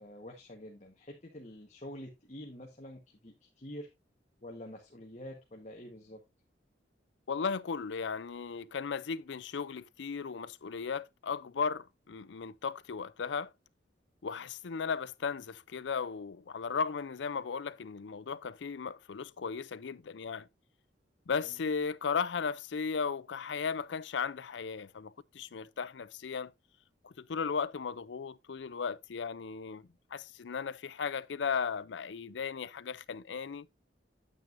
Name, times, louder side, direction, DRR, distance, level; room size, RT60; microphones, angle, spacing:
voice 1, 0.0-3.9 4.4-6.2 21.4-21.6, equal, 40° left, 1.3 m, -47 dB
voice 2, 7.3-13.5 14.2-20.5 21.3-26.5 27.0-33.7, left 5 dB, 75° left, 0.5 m, -36 dB
9.0 x 9.0 x 2.6 m
head